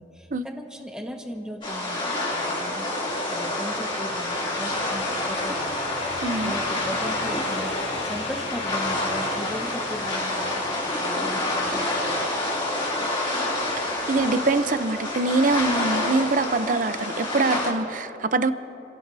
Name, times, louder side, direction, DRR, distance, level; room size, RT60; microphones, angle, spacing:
voice 1, 0.0-6.0 6.4-7.7 8.0-12.3, equal, 5° right, 1 dB, 1.4 m, -37 dB
sound 1, 1.6-17.7, left 1 dB, 30° left, 2.8 m, -28 dB
sound 2, 3.2-12.1, left 3 dB, 80° left, 2.0 m, -39 dB
voice 2, 6.2-6.5 13.8-18.5, right 3 dB, 50° right, 11 dB, 0.6 m, -24 dB
30.0 x 17.0 x 2.7 m, 2.9 s
head